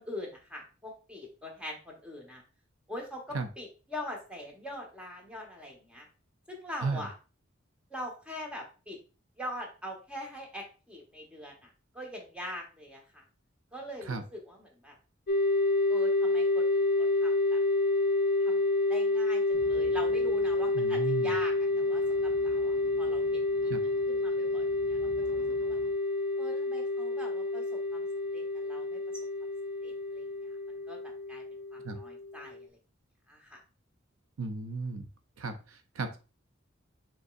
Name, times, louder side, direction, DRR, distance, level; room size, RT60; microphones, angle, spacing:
voice 1, 0.0-2.4 2.9-6.1 6.5-7.1 7.9-9.0 9.4-11.7 11.9-13.2 13.7-15.0 15.9-17.6 18.4-23.7 24.1-25.8 26.4-28.1 28.3-29.0 29.8-31.0 31.3-31.4 31.7-32.8 33.3-33.6, left 1 dB, 5° right, 0 dB, 1.1 m, -43 dB
sound 1, 15.3-32.6, left 2 dB, 50° left, 0.4 m, -29 dB
sound 2, 19.5-25.9, right 1 dB, 60° right, 1.0 m, -52 dB
voice 2, 20.7-21.3 23.7-23.8 31.8-32.0 34.4-35.1 35.4-36.2, right 4 dB, 90° right, 8 dB, 0.6 m, -34 dB
5.2 x 3.6 x 2.5 m, 0.34 s
head